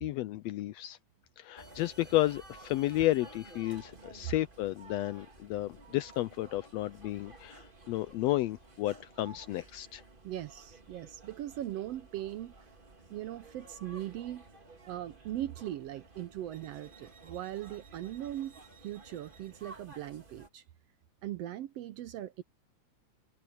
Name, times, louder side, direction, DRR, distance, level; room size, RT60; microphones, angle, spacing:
voice 1, 0.0-1.0 1.4-10.0, left 15 dB, 80° left, 1.5 m, -32 dB
sound 1, 1.6-20.5, right 2 dB, 20° right, 1.6 m, -54 dB
voice 2, 10.2-12.5 13.1-14.4 14.9-18.6 18.8-20.6 21.2-22.4, right 13 dB, 70° right, 1.6 m, -39 dB
omnidirectional pair, 3.4 m